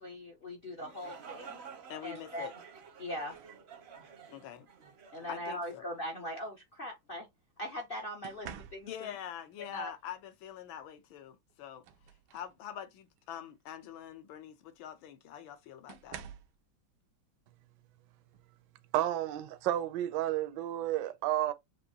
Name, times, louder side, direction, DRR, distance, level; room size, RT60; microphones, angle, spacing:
voice 1, 0.0-1.6 2.0-2.5 3.0-3.4 5.1-7.3 7.6-9.1 9.7-9.9, equal, 60° left, 0.5 m, -40 dB
sound 1, 0.6-6.3, right 6 dB, 50° right, 0.7 m, -51 dB
voice 2, 1.9-2.5 4.3-4.7 5.3-5.8 8.8-11.8 12.3-16.2, left 10 dB, 80° left, 1.6 m, -45 dB
sound 2, 3.3-3.6 4.9-5.2 8.2-9.2 11.0-11.1 11.5-12.6 13.1-13.4 14.7-14.8 15.9-16.6 18.3-18.5 19.0-19.3, right 8 dB, 85° right, 1.5 m, -49 dB
voice 3, 18.9-21.5, right 13 dB, 70° right, 1.1 m, -31 dB
6.6 x 2.6 x 2.8 m
omnidirectional pair, 2.2 m